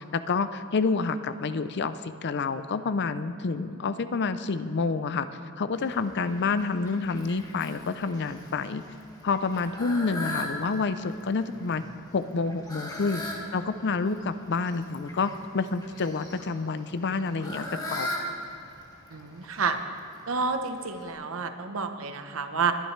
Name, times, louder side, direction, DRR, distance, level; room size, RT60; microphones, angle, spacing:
voice 1, 0.0-5.3 5.6-8.8 9.2-11.8 12.1-13.2 13.5-18.1, left 4 dB, 55° left, 12 dB, 0.5 m, -28 dB
Fowl, 5.7-21.1, left 1 dB, 20° left, 1.8 m, -40 dB
voice 2, 19.1-19.8 20.3-22.7, right 5 dB, 70° right, 7 dB, 0.9 m, -29 dB
21.0 x 11.0 x 3.2 m, 2.7 s
head